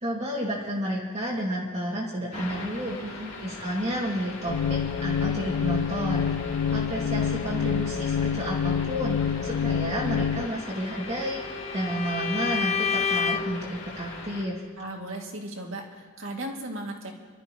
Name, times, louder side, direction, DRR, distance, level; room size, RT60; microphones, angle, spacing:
voice 1, 0.0-3.0 3.4-6.3 6.7-11.4 11.7-14.6, equal, 30° right, -5 dB, 1.9 m, -31 dB
sound 1, 2.3-14.4, left 3 dB, 60° left, 3.4 m, -41 dB
voice 2, 3.0-3.3 14.8-17.1, right 1 dB, 70° right, 0 dB, 2.2 m, -36 dB
sound 2, 4.5-10.5, left 7 dB, 75° left, 0.3 m, -27 dB
Bowed string instrument, 10.6-13.6, left 6 dB, 30° left, 0.6 m, -29 dB
27.0 x 12.5 x 3.0 m, 1.4 s
head